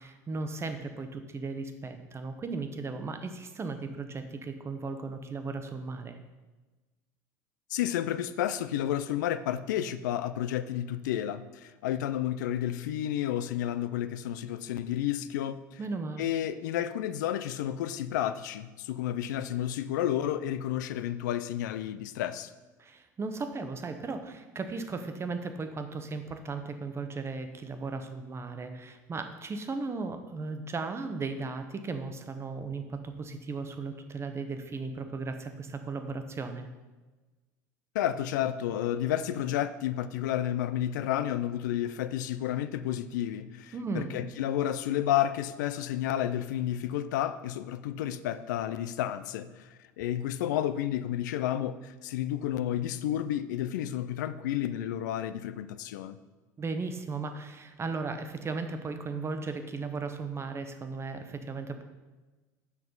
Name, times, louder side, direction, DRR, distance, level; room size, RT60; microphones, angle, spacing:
voice 1, 0.0-6.2 15.8-16.2 22.8-36.7 43.7-44.2 56.6-61.8, right 4 dB, 25° right, 7 dB, 0.9 m, -36 dB
voice 2, 7.7-15.8 16.2-22.5 37.9-56.2, left 11 dB, 75° left, 12 dB, 0.4 m, -31 dB
7.2 x 6.0 x 3.9 m, 1.2 s
hypercardioid pair, 80°, 10 cm